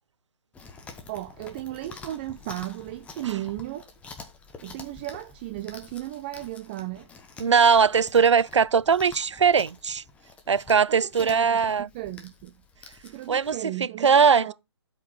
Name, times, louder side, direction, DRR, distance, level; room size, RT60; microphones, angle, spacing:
Chewing mastication, 0.5-13.6, left 4 dB, 10° left, 1.0 m, -47 dB
voice 1, 1.1-3.9 4.6-7.1 10.9-12.6 13.0-14.5, right 15 dB, 20° right, 0.4 m, -35 dB
voice 2, 7.4-10.0 10.5-11.9 13.3-14.5, right 6 dB, 85° right, 0.5 m, -20 dB
12.0 x 5.0 x 3.8 m
hypercardioid pair, 145°, 15 cm